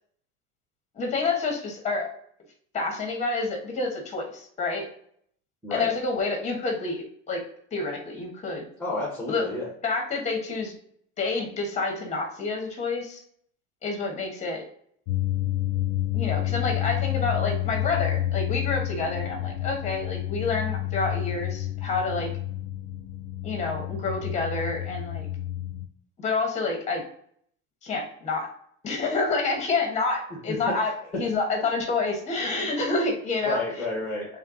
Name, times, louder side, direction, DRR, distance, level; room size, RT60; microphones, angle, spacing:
voice 1, 0.9-2.1 2.7-4.9 5.7-7.4 7.7-8.6 9.3-9.4 9.8-10.7 11.2-13.2 13.8-14.6 16.1-22.3 23.4-25.3 26.2-27.0 27.8-28.5 28.8-33.6, left 3 dB, 20° left, 2 dB, 1.2 m, -28 dB
voice 2, 8.8-9.7 30.5-30.6 33.4-34.3, left 2 dB, 5° left, -4 dB, 1.2 m, -30 dB
sound 1, 15.1-25.9, left 13 dB, 55° left, 0.5 m, -29 dB
3.4 x 3.3 x 3.7 m, 0.64 s
supercardioid pair, 145°, 33 cm